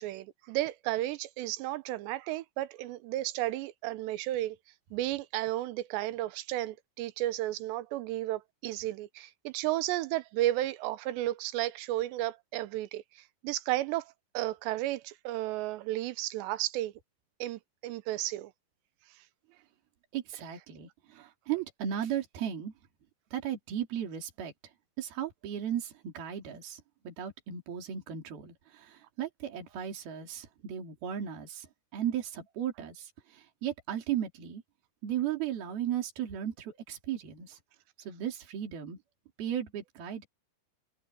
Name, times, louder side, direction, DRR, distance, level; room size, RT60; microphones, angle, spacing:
voice 1, 0.0-4.6 4.9-16.9 17.4-18.5 21.2-21.3, right 15 dB, 85° right, 3.1 m, -33 dB
voice 2, 20.1-22.7 23.3-24.5 25.0-31.7 31.9-34.6 35.0-37.6 38.0-39.0 39.4-40.3, right 10 dB, 60° right, 5.0 m, -36 dB
omnidirectional pair, 4.9 m